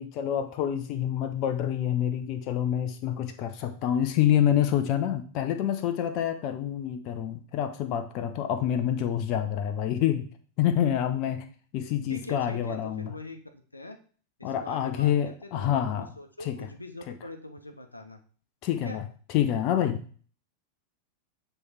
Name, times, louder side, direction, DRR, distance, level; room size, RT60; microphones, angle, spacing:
voice 1, 0.0-10.3 10.6-11.4 11.7-13.1 14.4-16.1 16.4-16.6 18.6-19.0 19.3-20.0, left 10 dB, 40° left, 8 dB, 0.6 m, -27 dB
voice 2, 12.1-13.4 13.7-14.0 14.4-15.7 16.0-18.2 18.8-19.0, left 2 dB, 85° left, 6 dB, 0.8 m, -43 dB
8.0 x 3.4 x 4.3 m, 0.42 s
figure-of-eight pair, 90°, 0 cm